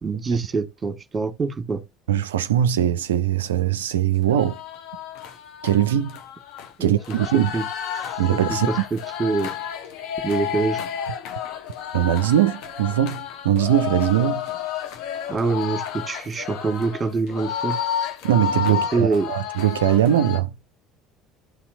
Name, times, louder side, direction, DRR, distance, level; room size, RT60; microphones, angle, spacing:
voice 1, 0.0-1.8 6.8-7.2 7.5-7.7 7.9-8.2 8.5-9.5 10.2-10.8 15.3-17.8 18.7-19.3, right 4 dB, 20° right, 1.5 m, -25 dB
voice 2, 2.1-4.6 5.6-6.2 6.8-7.6 8.2-8.7 11.9-14.4 18.2-20.5, right 11 dB, 70° right, 0.3 m, -21 dB
sound 1, 4.3-20.4, left 9 dB, 55° left, 1.0 m, -31 dB
12.0 x 4.2 x 2.6 m
figure-of-eight pair, 60°, 0 cm